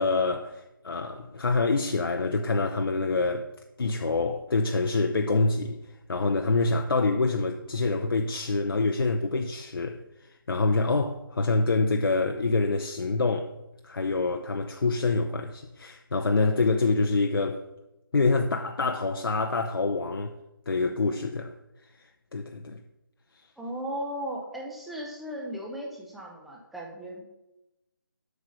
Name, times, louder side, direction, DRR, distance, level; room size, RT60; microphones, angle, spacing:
voice 1, 0.0-3.5 3.8-5.8 6.1-10.0 10.5-13.5 13.8-17.6 18.1-20.3 20.7-21.5 22.3-22.8, left 3 dB, 75° left, 0.8 m, -26 dB
voice 2, 23.6-27.2, right 1 dB, ahead, 0.6 m, -36 dB
8.1 x 5.6 x 6.2 m
figure-of-eight pair, 165°, 12 cm